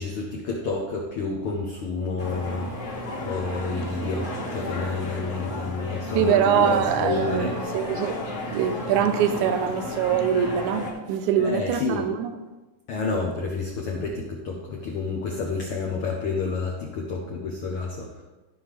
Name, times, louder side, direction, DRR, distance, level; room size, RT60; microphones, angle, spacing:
voice 1, 0.0-2.7 3.2-7.5 11.4-12.1 12.9-18.2, left 4 dB, 80° left, -1 dB, 1.2 m, -29 dB
sound 1, 2.2-10.9, left 1 dB, 35° left, 1.3 m, -33 dB
voice 2, 6.2-8.2 8.5-12.4, right 8 dB, 80° right, 8 dB, 1.9 m, -23 dB
13.0 x 5.4 x 3.3 m, 1.2 s
omnidirectional pair, 3.7 m